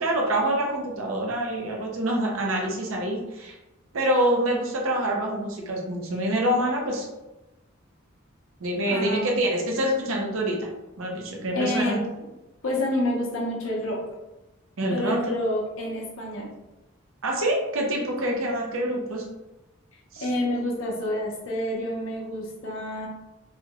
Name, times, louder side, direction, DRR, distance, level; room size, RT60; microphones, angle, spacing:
voice 1, 0.0-3.6 3.9-7.1 8.6-10.7 11.0-12.0 14.8-15.2 17.2-19.2 20.1-20.3, right 1 dB, 75° right, -1 dB, 0.6 m, -26 dB
voice 2, 8.9-9.3 11.5-12.0 12.6-14.0 14.9-16.5 18.2-18.4 20.2-23.1, left 1 dB, 75° left, -2 dB, 0.8 m, -28 dB
3.3 x 2.3 x 3.0 m, 1.0 s
head